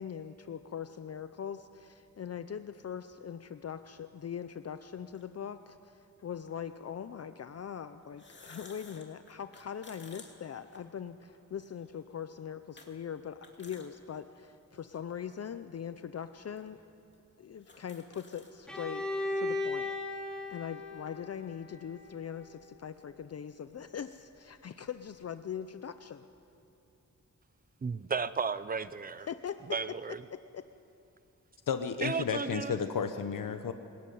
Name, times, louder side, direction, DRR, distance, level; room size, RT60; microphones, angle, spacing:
voice 1, 0.0-16.9 17.4-19.1 19.4-19.9 20.5-26.3 29.3-29.8 30.3-30.7, left 8 dB, 50° left, 11 dB, 0.6 m, -41 dB
sound 1, 5.1-5.2 6.5-6.6 8.0-11.4 11.8-11.9 12.8-12.9 13.3-13.9 14.4-14.5 15.3-15.4 16.2-16.3 16.6-16.7 17.1-17.2 17.5-18.5, left 3 dB, 35° left, 2.4 m, -54 dB
Bowed string instrument, 18.7-22.5, left 2 dB, ahead, 3.2 m, -37 dB
voice 2, 27.8-29.3 29.7-30.2 32.0-32.8, right 5 dB, 30° right, 15 dB, 0.5 m, -34 dB
voice 3, 31.7-33.7, left 6 dB, 85° left, 8 dB, 1.0 m, -32 dB
23.5 x 20.5 x 9.4 m, 2.9 s
wide cardioid pair, 170°, 32 cm